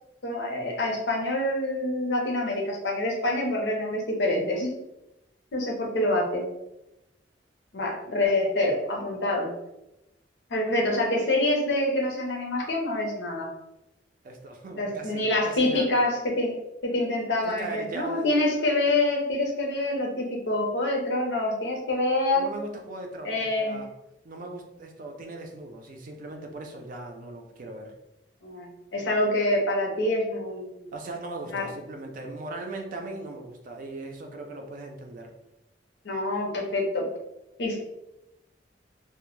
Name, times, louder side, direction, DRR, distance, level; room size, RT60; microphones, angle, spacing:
voice 1, 0.2-4.7 5.5-6.5 7.7-9.5 10.5-13.5 14.8-16.5 16.8-22.5 23.2-23.8 28.4-28.7 28.9-30.8 31.5-31.7 36.0-37.1 37.6-37.8, left 1 dB, 80° left, 0 dB, 0.6 m, -26 dB
voice 2, 14.2-15.9 17.4-18.3 22.3-23.9 24.2-27.9 30.9-35.3, right 2 dB, 50° right, 3 dB, 0.4 m, -39 dB
2.1 x 2.1 x 3.0 m, 0.90 s
head